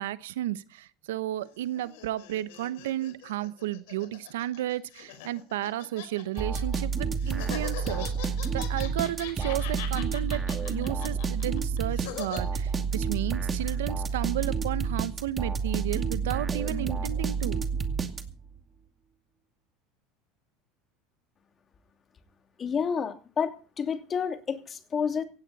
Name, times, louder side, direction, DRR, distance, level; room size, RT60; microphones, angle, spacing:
voice 1, 0.0-17.6, right 13 dB, 90° right, 0.9 m, -33 dB
sound 1, 1.4-6.8 7.2-12.4, left 12 dB, 80° left, 4.8 m, -42 dB
sound 2, 6.4-18.6, right 5 dB, 25° right, 2.3 m, -30 dB
voice 2, 22.6-25.2, left 6 dB, 35° left, 2.8 m, -30 dB
17.0 x 16.5 x 4.2 m
supercardioid pair, 105°, 0 cm